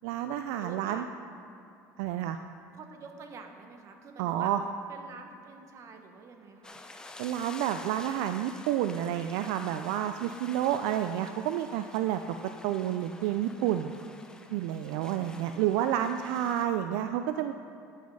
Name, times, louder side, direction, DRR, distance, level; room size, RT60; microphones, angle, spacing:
voice 1, 0.0-1.1 2.0-2.4 4.2-4.6 7.2-12.4 12.6-13.9 14.5-17.5, right 11 dB, 80° right, 8 dB, 0.4 m, -30 dB
voice 2, 0.6-1.1 2.7-4.5 4.9-6.8 9.9-10.3 14.8-15.6, right 4 dB, 45° right, 4 dB, 1.2 m, -48 dB
sound 1, 6.6-16.7, left 2 dB, 10° left, 0.7 m, -49 dB
10.0 x 6.2 x 5.5 m, 2.8 s
supercardioid pair, 100°, 7 cm